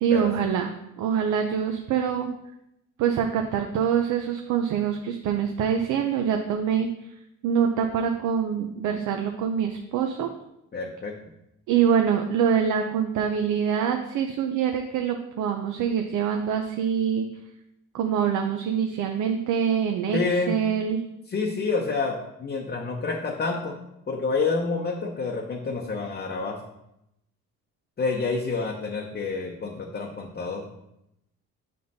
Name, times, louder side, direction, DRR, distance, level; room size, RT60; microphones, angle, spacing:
voice 1, 0.0-2.3 3.0-6.9 7.4-10.3 11.7-17.3 17.9-20.2 20.5-21.0, right 8 dB, 85° right, 4 dB, 0.6 m, -25 dB
voice 2, 10.7-11.1 20.1-20.6 21.3-23.8 24.1-26.6 28.0-30.6, left 4 dB, 35° left, 0 dB, 0.7 m, -28 dB
7.6 x 5.1 x 2.7 m, 0.83 s
cardioid pair, 90°, 30 cm